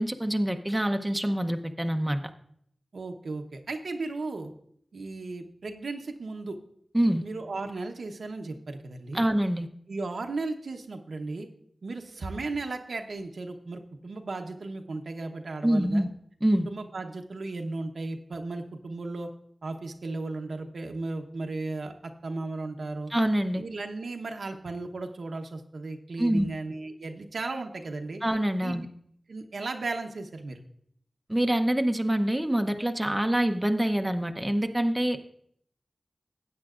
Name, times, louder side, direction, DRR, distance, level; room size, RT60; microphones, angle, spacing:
voice 1, 0.0-2.2 6.9-7.2 9.1-9.7 15.6-16.1 16.4-16.7 23.1-23.6 26.2-26.5 28.2-28.9 31.3-35.2, right 1 dB, 15° right, 6 dB, 0.7 m, -25 dB
voice 2, 2.9-4.5 4.9-6.6 7.2-9.2 9.9-11.5 11.8-16.0 16.7-19.3 19.6-21.9 22.2-23.1 23.5-28.2 28.6-28.8 29.3-30.6, right 3 dB, 90° right, 4 dB, 0.9 m, -35 dB
15.5 x 8.9 x 2.5 m, 0.67 s
wide cardioid pair, 65°, 0 cm